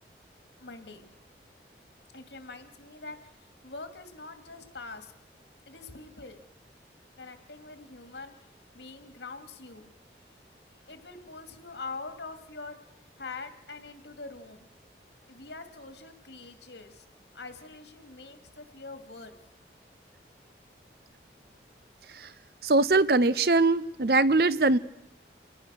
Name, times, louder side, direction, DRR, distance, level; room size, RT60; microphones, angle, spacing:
voice 1, 0.6-1.1 2.1-3.2 3.6-5.1 5.7-6.4 7.2-8.4 8.7-9.9 10.9-12.8 13.2-14.7 15.3-17.0 17.3-19.4, left 3 dB, 75° left, 7 dB, 2.5 m, -44 dB
voice 2, 22.6-24.8, right 3 dB, 55° right, 16 dB, 0.7 m, -22 dB
28.0 x 19.0 x 6.5 m, 0.83 s
head